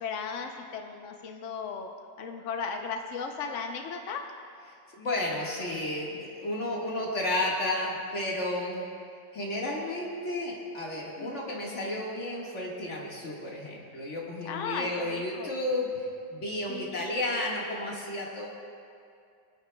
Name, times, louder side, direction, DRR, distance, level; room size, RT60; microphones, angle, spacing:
voice 1, 0.0-1.9 2.2-4.3 11.2-11.6 14.4-15.5 16.7-17.1, left 5 dB, 65° left, 3 dB, 0.7 m, -36 dB
voice 2, 5.0-8.9 9.3-15.9 16.3-18.5, left 1 dB, 40° left, -3 dB, 1.9 m, -32 dB
25.5 x 9.2 x 2.2 m, 2.4 s
omnidirectional pair, 2.0 m